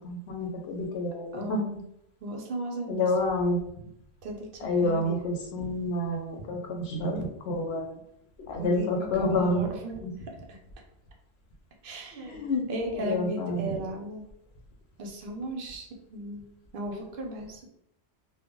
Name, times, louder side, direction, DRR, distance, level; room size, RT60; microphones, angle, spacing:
voice 1, 0.0-1.8 2.9-3.9 4.6-8.0 8.5-9.7 10.0-10.2 12.2-13.8, left 1 dB, 70° left, 2 dB, 0.8 m, -29 dB
voice 2, 1.3-1.7 2.2-3.1 4.2-5.1 8.6-10.0 10.5-10.6 11.8-14.2 15.0-16.4 16.7-17.6, right 1 dB, 60° right, 2 dB, 0.7 m, -36 dB
2.1 x 2.0 x 3.6 m, 0.74 s
omnidirectional pair, 1.2 m